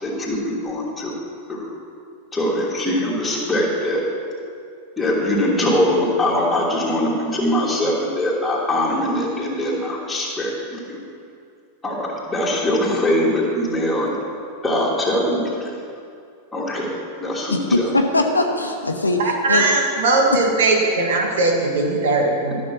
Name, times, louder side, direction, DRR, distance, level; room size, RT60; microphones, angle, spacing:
voice 1, 0.0-1.2 1.5-1.7 2.3-4.0 5.0-11.0 11.8-14.1 14.6-15.7 16.5-16.9 17.2-17.8, left 1 dB, 10° left, -5 dB, 2.8 m, -22 dB
voice 2, 17.5-19.6, left 2 dB, 80° left, 3 dB, 0.9 m, -21 dB
voice 3, 19.2-22.6, right 2 dB, 60° right, 1 dB, 1.8 m, -19 dB
12.5 x 6.5 x 6.1 m, 2.3 s
figure-of-eight pair, 90°, 0 cm